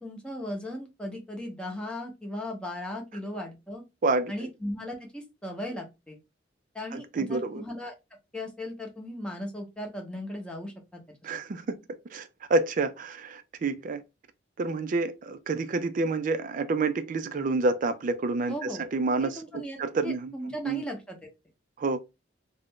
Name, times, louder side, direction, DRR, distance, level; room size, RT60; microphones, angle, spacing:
voice 1, 0.0-3.8 4.3-6.2 6.7-7.9 8.3-11.0 18.5-18.8 19.2-21.2, left 1 dB, 5° left, 0.7 m, -37 dB
voice 2, 4.0-4.5 6.9-7.6 11.2-11.8 12.1-14.0 14.6-20.8 21.8-22.0, right 3 dB, 45° right, 0.3 m, -29 dB
2.4 x 2.1 x 3.5 m
head